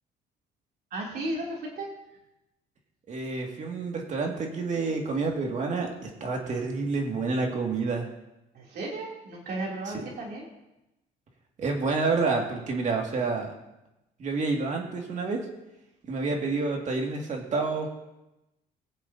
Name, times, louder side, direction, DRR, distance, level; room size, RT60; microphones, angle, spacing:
voice 1, 0.9-1.9 8.5-10.5, right 2 dB, 65° right, -2 dB, 3.0 m, -34 dB
voice 2, 3.1-8.1 11.6-13.5 14.2-15.4 16.1-17.9, right 3 dB, 45° right, 1 dB, 2.1 m, -28 dB
21.5 x 7.5 x 2.8 m, 0.95 s
cardioid pair, 110°, 17 cm